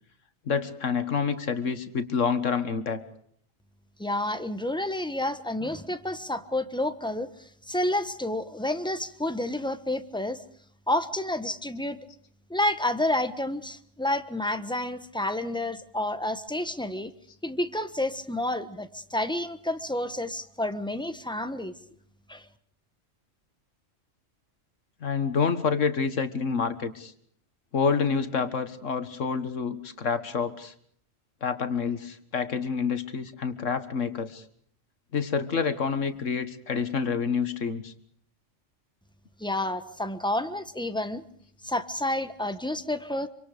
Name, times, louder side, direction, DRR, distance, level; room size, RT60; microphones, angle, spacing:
voice 1, 0.5-3.0 25.0-27.1 27.7-30.7 31.4-34.4 35.1-37.9, left 5 dB, 70° left, 10 dB, 1.9 m, -28 dB
voice 2, 4.0-10.4 10.9-12.0 12.5-17.1 17.4-21.7 22.3-22.4 39.4-41.2 41.6-43.3, left 1 dB, 5° left, 10 dB, 1.2 m, -29 dB
26.5 x 25.0 x 5.1 m, 0.63 s
omnidirectional pair, 1.3 m